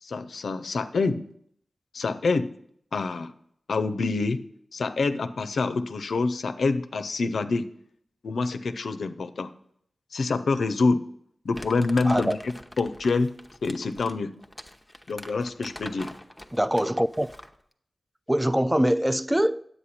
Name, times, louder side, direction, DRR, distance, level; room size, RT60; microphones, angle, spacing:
voice 1, 0.0-1.2 1.9-2.5 2.9-3.3 3.7-4.4 4.7-7.7 8.2-9.5 10.1-11.0 11.4-12.4 12.8-13.3 13.6-14.3 15.1-16.1, left 3 dB, 85° left, 0.5 m, -26 dB
Crumpling crinkling, 11.5-17.6, left 1 dB, 10° left, 0.7 m, -44 dB
voice 2, 12.0-12.4 16.5-17.3 18.3-19.7, right 1 dB, 10° right, 0.3 m, -23 dB
9.7 x 8.1 x 4.2 m
cardioid pair, 55°, 0 cm